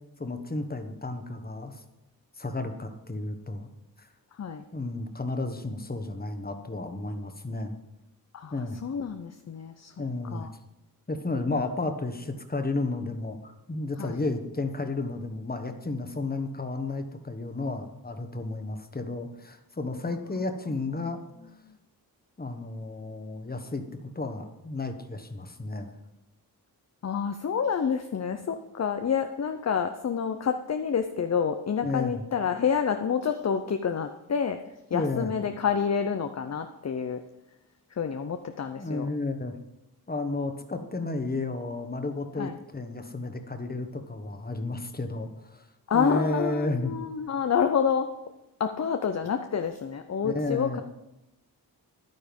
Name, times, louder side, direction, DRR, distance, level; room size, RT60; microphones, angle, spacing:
voice 1, 0.2-1.8 2.4-3.7 4.0-4.1 4.7-7.7 8.5-8.8 10.0-10.5 11.1-21.2 22.4-25.9 31.8-32.2 34.9-35.3 38.8-39.6 40.1-45.6 45.9-46.9 50.2-50.8, left 2 dB, 25° left, 7 dB, 1.3 m, -32 dB
voice 2, 4.3-4.6 8.3-10.5 14.0-14.2 21.0-21.2 21.6-21.8 27.0-37.2 37.9-39.1 42.4-42.6 45.9-48.1 48.6-50.8, left 7 dB, 45° left, 7 dB, 0.6 m, -28 dB
11.0 x 9.4 x 5.3 m, 0.92 s
wide cardioid pair, 95°, 38 cm